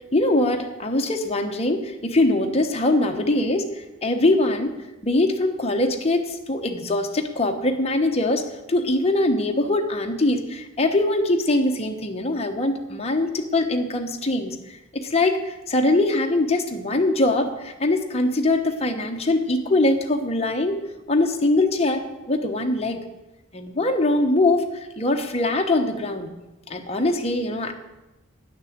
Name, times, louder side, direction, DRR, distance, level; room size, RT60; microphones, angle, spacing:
voice 1, 0.1-3.7 4.0-4.7 5.0-20.8 21.1-23.0 23.5-24.7 25.0-26.3 26.7-27.7, left 2 dB, 30° left, 4 dB, 1.0 m, -22 dB
10.5 x 6.4 x 7.9 m, 1.0 s
head